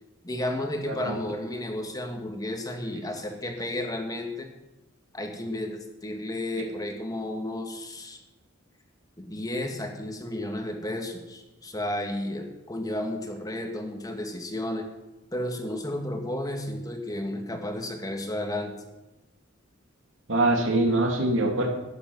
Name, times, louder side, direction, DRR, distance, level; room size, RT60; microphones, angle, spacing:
voice 1, 0.2-4.5 5.1-8.2 9.2-14.9 15.3-18.7, left 1 dB, 20° left, 4 dB, 1.6 m, -32 dB
voice 2, 0.9-1.2 20.3-21.7, right 2 dB, 70° right, 2 dB, 2.6 m, -23 dB
12.0 x 10.5 x 6.2 m, 1.0 s
head